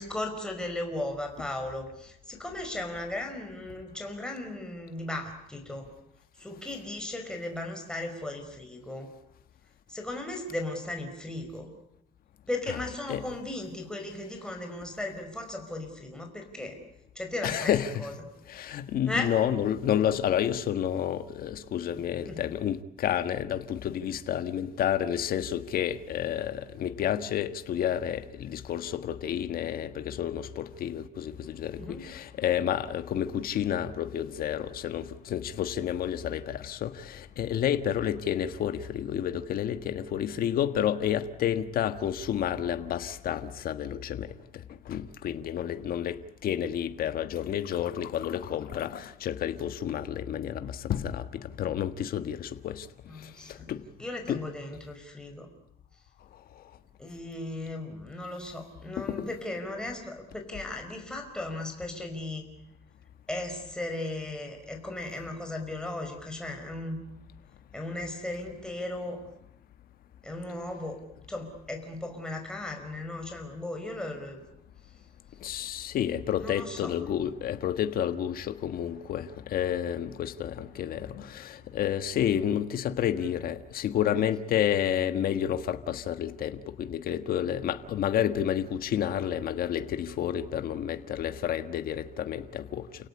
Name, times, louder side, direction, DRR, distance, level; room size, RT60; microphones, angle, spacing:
voice 1, 0.0-5.9 6.4-9.1 9.9-11.7 12.5-16.8 17.1-17.7 18.0-18.1 19.0-19.3 22.3-22.4 31.8-32.0 53.1-53.7 54.0-55.5 57.0-62.4 63.3-67.0 67.7-69.2 70.2-71.0 71.3-74.4 76.4-76.9 84.1-84.2, left 2 dB, 5° left, 5.1 m, -36 dB
voice 2, 17.4-18.1 18.5-44.3 44.9-52.9 53.5-53.8 54.3-54.4 59.0-59.3 75.4-92.9, left 10 dB, 60° left, 1.5 m, -30 dB
29.5 x 17.5 x 9.8 m
cardioid pair, 110°, 17 cm